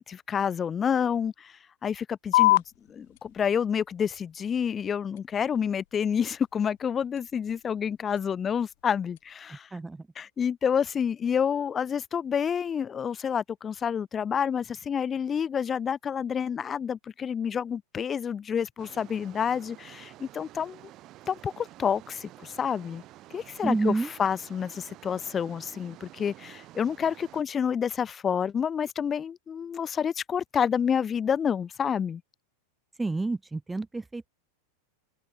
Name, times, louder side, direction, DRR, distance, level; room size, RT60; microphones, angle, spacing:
voice 1, 0.0-1.5 1.8-2.6 2.9-9.7 10.1-20.8 21.3-23.0 23.3-32.2, left 7 dB, 20° left, 1.4 m, -29 dB
sound 1, 2.3-9.3, left 18 dB, 50° left, 0.3 m, -31 dB
sound 2, 18.8-27.4, right 15 dB, 35° right, 3.6 m, -50 dB
voice 2, 23.6-24.1 33.0-34.3, right 3 dB, 10° right, 1.2 m, -28 dB
figure-of-eight pair, 90°, 0 cm